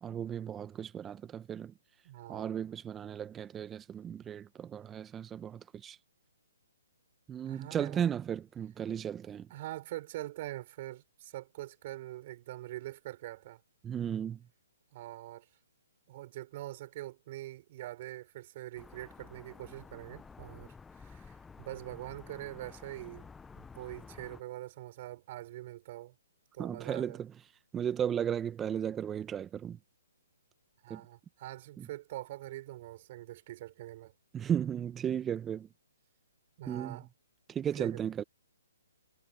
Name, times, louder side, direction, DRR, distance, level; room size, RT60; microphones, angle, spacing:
voice 1, 0.0-1.7 2.3-6.0 7.3-9.5 13.8-14.5 26.6-27.3 27.7-29.8 30.9-31.0 31.8-31.9 34.3-35.7 36.7-37.0 37.5-38.2, right 9 dB, 15° right, 1.2 m, -35 dB
voice 2, 2.0-2.5 7.5-8.0 9.5-13.6 14.9-15.5 16.1-23.3 23.5-26.1 26.5-27.2 30.8-34.1 36.6-37.1 37.8-37.9, right 15 dB, 40° right, 6.5 m, -44 dB
sound 1, 18.8-24.4, left 5 dB, 10° left, 0.8 m, -52 dB
hypercardioid pair, 140°, 0 cm